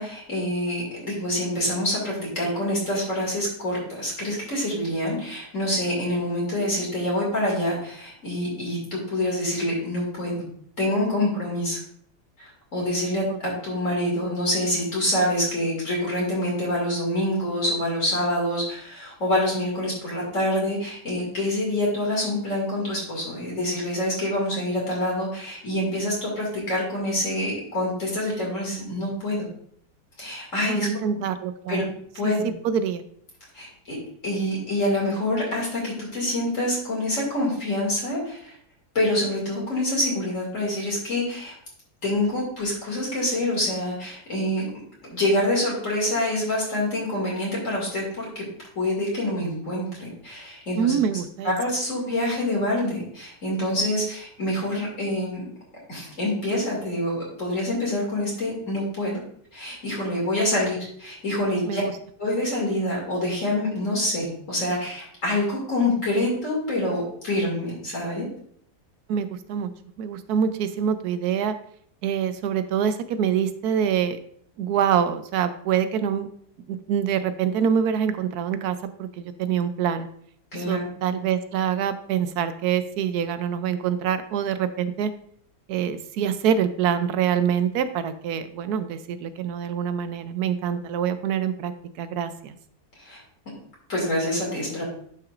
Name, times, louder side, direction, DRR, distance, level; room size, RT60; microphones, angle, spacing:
voice 1, 0.0-10.4 10.8-11.8 12.4-29.5 30.2-30.9 31.7-31.8 32.1-32.5 33.5-34.0 34.2-38.6 38.9-41.5 42.0-44.6 45.0-48.5 48.8-50.9 51.4-55.5 55.9-59.2 59.5-61.8 62.2-68.3 80.5-81.2 93.0-93.2 93.9-94.8, left 1 dB, 50° left, -4 dB, 2.7 m, -26 dB
voice 2, 30.7-31.8 32.2-32.3 32.6-33.0 50.8-51.5 61.6-61.9 69.1-69.7 70.0-71.6 72.0-74.2 74.6-76.3 76.7-80.1 80.7-85.1 85.7-91.7 92.0-92.6, right 8 dB, 75° right, 11 dB, 1.1 m, -25 dB
11.0 x 5.9 x 2.5 m, 0.63 s
omnidirectional pair, 1.7 m